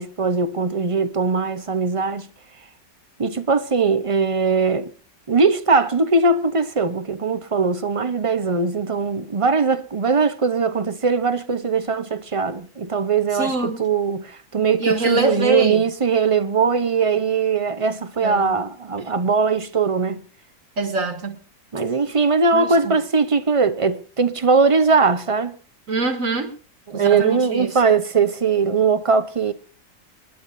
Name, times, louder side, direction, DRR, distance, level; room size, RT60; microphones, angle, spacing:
voice 1, 0.0-2.3 3.2-4.9 5.3-20.2 21.7-25.5 26.9-29.5, right 4 dB, 30° right, 0.6 m, -20 dB
voice 2, 13.3-13.8 14.8-15.8 18.2-18.6 20.8-21.4 22.5-23.0 25.9-26.5 26.9-27.7, right 3 dB, 55° right, 2.2 m, -24 dB
28.0 x 11.0 x 2.6 m
omnidirectional pair, 1.6 m